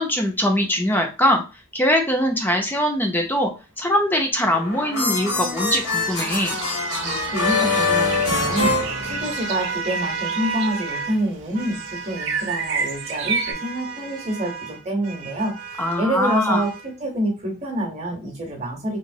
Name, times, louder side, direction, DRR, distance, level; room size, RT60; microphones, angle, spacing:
voice 1, 0.0-1.4 1.7-3.5 3.8-6.6 15.8-16.6, left 1 dB, 10° left, 3 dB, 0.4 m, -22 dB
sound 1, 4.4-9.7, left 3 dB, 85° left, 1.4 m, -24 dB
sound 2, 4.7-11.2 11.5-16.9, right 4 dB, 90° right, 0.7 m, -33 dB
sound 3, 5.5-13.5, right 5 dB, 55° right, 0.4 m, -32 dB
voice 2, 7.0-19.0, right 1 dB, 30° right, 1 dB, 0.8 m, -27 dB
3.0 x 2.8 x 2.6 m, 0.32 s
head